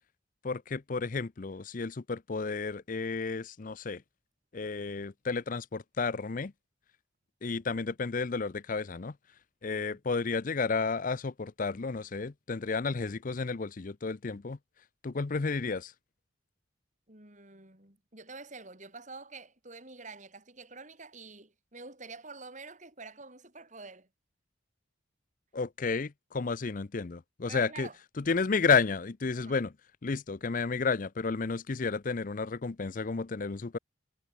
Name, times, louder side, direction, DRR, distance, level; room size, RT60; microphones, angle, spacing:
voice 1, 0.4-4.0 4.5-6.5 7.4-9.2 9.6-14.6 15.0-15.9 25.5-27.9 28.2-29.7 30.0-33.8, left 4 dB, 45° left, 0.6 m, -32 dB
voice 2, 17.1-24.1 27.5-28.0 29.4-29.6, right 3 dB, 40° right, 5.8 m, -47 dB
head